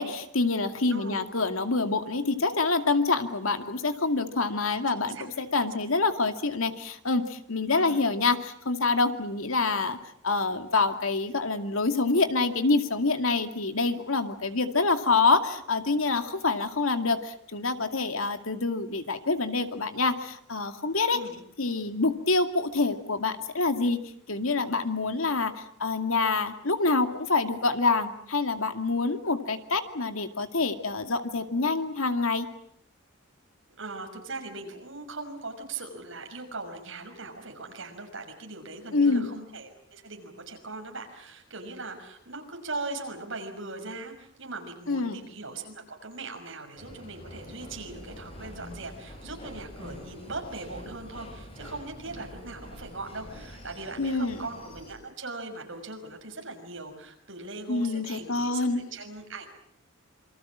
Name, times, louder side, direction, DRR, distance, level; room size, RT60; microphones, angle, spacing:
voice 1, 0.0-10.0 10.2-21.2 21.6-24.0 24.3-32.5 38.9-39.3 44.9-45.2 54.0-54.4 57.7-58.8, left 3 dB, 85° left, 7 dB, 2.3 m, -26 dB
voice 2, 0.9-1.3 4.9-5.3 7.7-8.0 21.1-21.4 33.7-59.5, right 3 dB, 65° right, 4 dB, 6.0 m, -40 dB
sound 1, 46.8-54.9, equal, 25° left, 7.6 m, -45 dB
27.5 x 24.5 x 7.4 m, 0.68 s
head